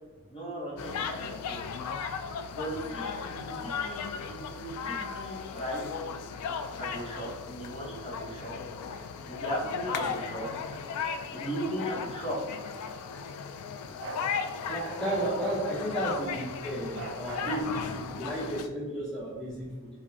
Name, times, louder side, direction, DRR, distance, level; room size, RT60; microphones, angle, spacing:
voice 1, 0.3-1.6 2.5-5.8 6.8-8.5 9.3-10.5 11.3-12.4, equal, 25° left, -4 dB, 0.9 m, -37 dB
sound 1, 0.8-18.7, left 6 dB, 90° left, 0.3 m, -36 dB
Bark, 14.0-14.3 15.4-15.6 17.0-17.7, right 4 dB, 60° right, 0.4 m, -40 dB
voice 2, 14.7-19.9, right 1 dB, 5° left, -8 dB, 0.6 m, -33 dB
4.7 x 2.1 x 2.6 m, 1.4 s
head